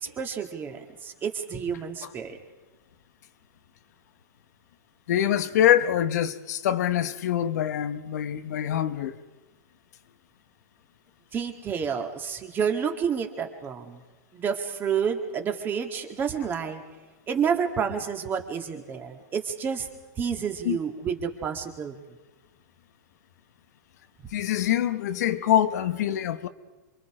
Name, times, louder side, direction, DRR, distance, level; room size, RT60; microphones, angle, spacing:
voice 1, 0.0-2.4 11.3-14.0 14.3-16.8 17.3-19.9 20.2-21.9, right 7 dB, 20° right, 2.0 m, -29 dB
voice 2, 5.1-9.2 20.6-20.8 24.3-26.5, left 11 dB, 65° left, 1.1 m, -24 dB
27.5 x 24.0 x 5.0 m
hypercardioid pair, 145°, 10 cm